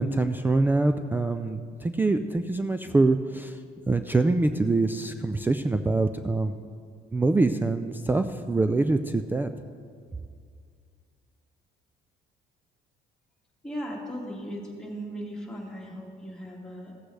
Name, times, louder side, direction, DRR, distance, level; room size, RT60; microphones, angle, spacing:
voice 1, 0.0-3.6 3.9-6.5 7.1-9.5, right 3 dB, 10° right, 8 dB, 0.3 m, -24 dB
voice 2, 13.6-16.9, equal, 5° left, -3 dB, 2.1 m, -37 dB
15.0 x 8.0 x 3.3 m, 2.2 s
cardioid pair, 110°, 17 cm